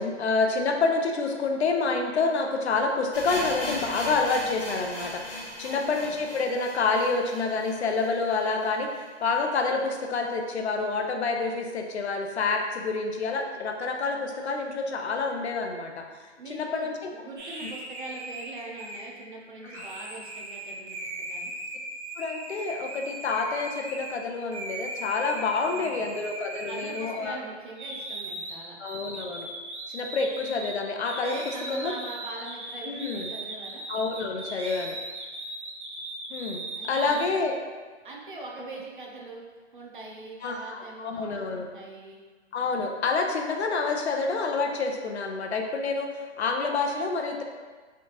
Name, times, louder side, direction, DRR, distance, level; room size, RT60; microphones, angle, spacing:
voice 1, 0.0-16.0 16.5-17.1 19.7-19.8 22.2-27.4 28.8-29.5 29.9-31.4 31.7-31.9 32.9-33.3 33.9-35.0 36.3-37.6 40.4-41.7 42.5-46.1 46.4-47.4, left 4 dB, 65° left, 3 dB, 0.5 m, -28 dB
sound 1, 3.1-9.0 9.3-9.4 9.6-9.7 10.3-10.4, left 1 dB, 25° left, 0.9 m, -38 dB
voice 2, 5.7-6.2 16.4-21.5 25.6-26.1 26.7-28.8 31.2-33.8 36.7-37.4 38.0-39.4 39.7-42.2, right 3 dB, 45° right, -1 dB, 0.5 m, -42 dB
sound 2, 17.4-24.2 24.5-27.4 27.8-37.2, right 2 dB, 70° right, 0.8 m, -38 dB
3.3 x 2.7 x 2.8 m, 1.4 s
hypercardioid pair, 175°, 35 cm